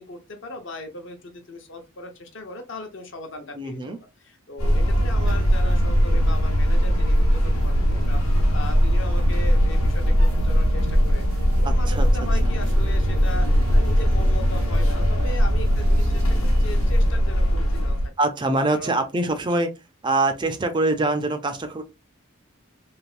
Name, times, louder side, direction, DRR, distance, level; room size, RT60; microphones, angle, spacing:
voice 1, 0.0-3.9 4.2-18.0 18.7-19.3, left 2 dB, 60° left, 0.8 m, -38 dB
voice 2, 3.6-4.0 11.6-12.1 12.4-12.5 18.2-19.7 20.0-21.8, right 2 dB, 20° right, 0.4 m, -24 dB
sound 1, 4.6-18.1, equal, 90° left, 1.0 m, -20 dB
sound 2, 5.2-17.1, right 2 dB, 85° right, 0.5 m, -37 dB
3.3 x 2.9 x 2.4 m
head